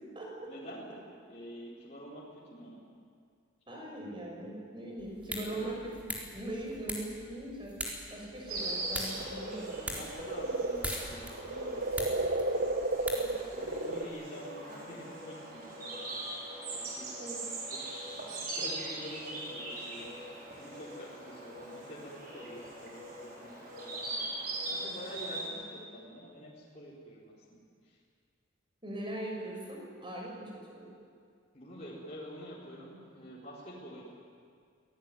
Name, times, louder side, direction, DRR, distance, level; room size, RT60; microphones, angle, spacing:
voice 1, 0.5-0.9 1.3-2.8 5.5-5.6 9.8-12.4 13.0-13.1 13.5-16.2 16.7-17.1 17.7-17.8 18.4-23.0 23.4-28.0 31.5-34.1, equal, 35° left, -7 dB, 4.7 m, -47 dB
voice 2, 3.7-7.7 8.1-10.0 13.2-13.3 17.2-17.5 28.8-30.9, right 1 dB, 25° right, -1 dB, 6.3 m, -40 dB
sound 1, 5.0-13.8, equal, 5° right, 3.9 m, -43 dB
sound 2, 8.4-14.0, right 2 dB, 65° right, 1.8 m, -33 dB
Insect, 8.5-25.5, right 2 dB, 45° right, 6.0 m, -41 dB
26.5 x 18.5 x 9.4 m, 2.2 s
head